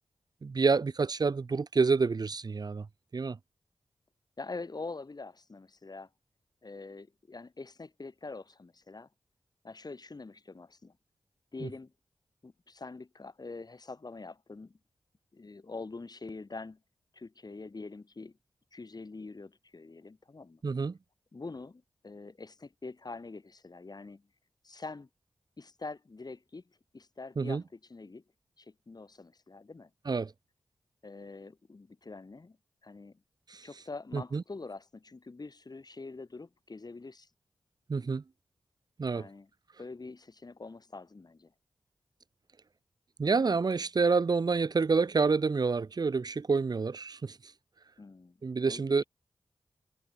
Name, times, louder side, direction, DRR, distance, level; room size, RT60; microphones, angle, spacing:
voice 1, 0.4-2.9 3.1-3.4 20.6-21.0 27.4-27.6 30.1-30.3 33.5-33.6 34.1-34.4 37.9-38.2 39.0-39.3 43.2-47.4 48.4-49.0, right 4 dB, 45° right, 0.6 m, -28 dB
voice 2, 4.4-6.1 6.6-9.1 9.6-11.0 11.5-11.9 12.4-14.8 15.3-16.8 17.1-18.4 18.7-20.6 21.3-24.2 24.6-25.1 25.6-26.6 26.9-28.2 28.6-29.9 31.0-32.6 32.8-33.2 33.6-37.3 39.1-39.5 39.8-41.5 48.0-48.4 48.7-49.1, left 3 dB, 45° left, 4.8 m, -45 dB
cardioid pair, 50°, 9 cm